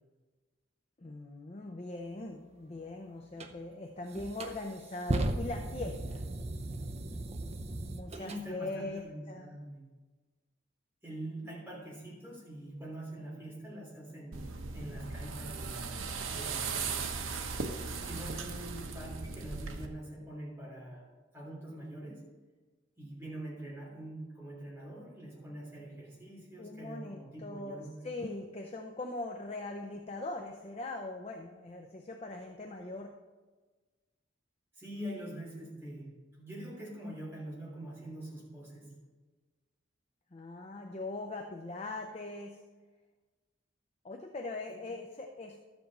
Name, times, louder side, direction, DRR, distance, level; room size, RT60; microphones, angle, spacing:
voice 1, 1.0-6.2 7.9-9.6 26.6-33.1 40.3-42.6 44.0-45.6, left 2 dB, 30° left, 3 dB, 0.5 m, -41 dB
sound 1, 3.4-3.5 4.1-8.4, right 2 dB, 30° right, 0.6 m, -36 dB
voice 2, 8.1-9.8 11.0-15.9 16.3-17.2 18.0-21.1 21.3-22.3 23.0-28.1 34.8-39.0 44.7-44.9, right 1 dB, 10° right, -5 dB, 3.2 m, -44 dB
sound 2, 14.3-19.9, right 4 dB, 85° right, 0.9 m, -38 dB
12.0 x 8.0 x 4.2 m, 1.3 s
head